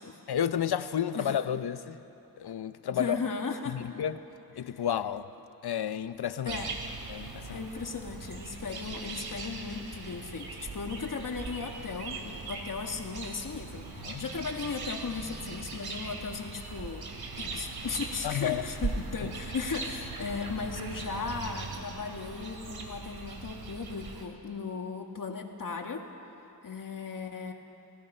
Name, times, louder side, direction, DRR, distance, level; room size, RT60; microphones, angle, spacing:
voice 1, 0.3-2.0 2.4-3.2 3.7-4.2 4.6-5.3 5.6-6.6 7.1-7.6 14.0-14.2 18.2-18.6 19.2-19.3, left 9 dB, 85° left, 12 dB, 0.8 m, -31 dB
voice 2, 2.9-3.9 4.6-4.8 6.4-6.8 7.5-17.1 17.4-26.1 26.6-27.5, left 5 dB, 55° left, 3 dB, 1.8 m, -36 dB
sound 1, 6.5-24.3, right 3 dB, 75° right, 2.4 m, -40 dB
30.0 x 18.5 x 5.6 m, 2.8 s
wide cardioid pair, 140°, 38 cm